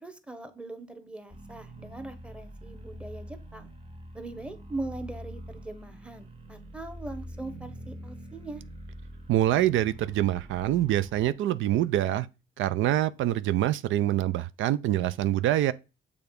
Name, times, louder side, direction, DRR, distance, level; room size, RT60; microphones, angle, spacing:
voice 1, 0.0-3.7 4.1-8.6, right 2 dB, 5° right, 1.1 m, -40 dB
sound 1, 1.3-11.3, equal, 30° right, 1.9 m, -44 dB
voice 2, 9.3-12.3 12.6-15.7, right 13 dB, 80° right, 0.5 m, -25 dB
6.9 x 3.5 x 5.2 m
cardioid pair, 90°, 20 cm